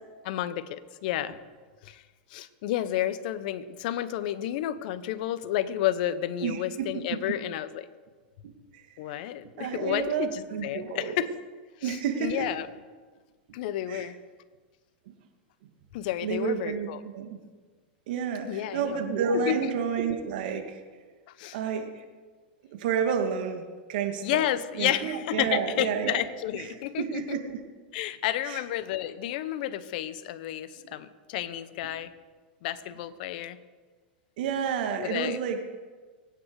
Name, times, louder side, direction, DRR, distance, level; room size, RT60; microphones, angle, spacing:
voice 1, 0.2-1.3 1.8-2.0 2.3-7.9 9.0-11.3 11.8-12.7 13.5-14.2 15.9-17.0 18.5-19.1 19.3-19.7 21.4-21.6 24.2-27.4 27.9-32.1 32.6-33.6 35.0-35.4, left 12 dB, 60° left, 13 dB, 1.0 m, -31 dB
voice 2, 6.4-7.2 9.6-11.1 11.8-12.5 13.9-14.1 16.2-16.9 17.1-17.4 18.1-20.8 21.5-21.9 22.8-23.6 23.9-24.4 24.7-26.2 26.5-26.6 27.0-27.6 28.5-28.6 34.4-35.6, right 7 dB, 65° right, 4 dB, 2.3 m, -30 dB
23.5 x 9.3 x 4.9 m, 1.4 s
hypercardioid pair, 110°, 5 cm